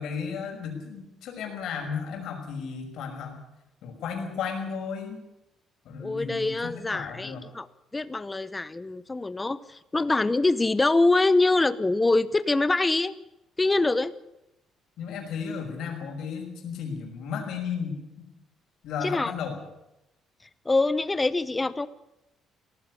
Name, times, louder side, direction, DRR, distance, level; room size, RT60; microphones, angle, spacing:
voice 1, 0.0-3.4 3.8-5.2 5.8-7.4 15.0-18.2 18.8-19.6, left 6 dB, 70° left, 3 dB, 5.8 m, -34 dB
voice 2, 6.0-7.7 7.9-13.1 13.6-14.1 19.0-19.3 20.6-21.9, left 2 dB, 15° left, 16 dB, 0.8 m, -24 dB
18.0 x 14.5 x 9.8 m, 0.90 s
cardioid pair, 145°, 0 cm